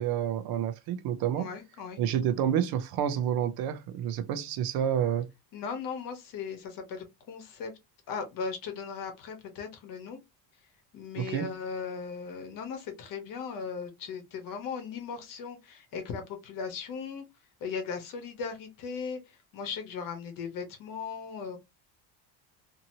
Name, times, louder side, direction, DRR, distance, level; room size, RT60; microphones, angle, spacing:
voice 1, 0.0-1.5 2.0-5.3 11.2-11.5, right 9 dB, 55° right, 0.6 m, -29 dB
voice 2, 1.4-2.0 5.5-7.7 8.1-10.2 10.9-17.2 17.6-21.6, left 5 dB, 45° left, 1.0 m, -38 dB
2.8 x 2.7 x 2.7 m
cardioid pair, 170°, 44 cm